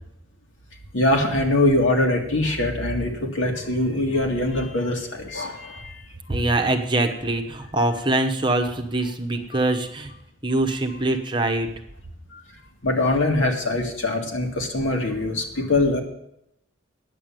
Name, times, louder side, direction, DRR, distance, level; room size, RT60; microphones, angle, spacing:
voice 1, 0.9-6.0 12.3-12.4 12.8-16.0, left 2 dB, 80° left, 2 dB, 2.2 m, -23 dB
voice 2, 6.3-10.1 10.4-11.7, right 2 dB, 25° right, 4 dB, 1.1 m, -23 dB
9.8 x 7.1 x 9.0 m, 0.77 s
head